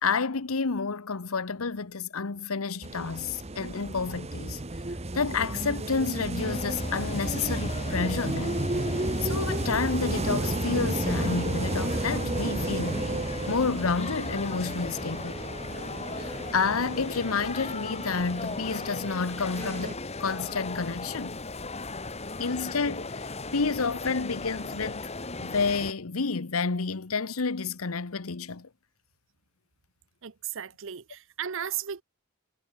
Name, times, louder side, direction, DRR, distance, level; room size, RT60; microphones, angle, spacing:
voice 1, 0.0-4.6 5.1-8.6 9.2-13.1 13.5-15.4 16.1-21.4 22.4-25.0 25.4-28.7, left 4 dB, 80° left, 1.0 m, -30 dB
sound 1, 2.8-19.9, right 2 dB, 30° right, 1.2 m, -33 dB
sound 2, 6.4-25.9, left 3 dB, 30° left, 2.5 m, -37 dB
voice 2, 30.2-32.0, right 9 dB, 60° right, 0.7 m, -35 dB
head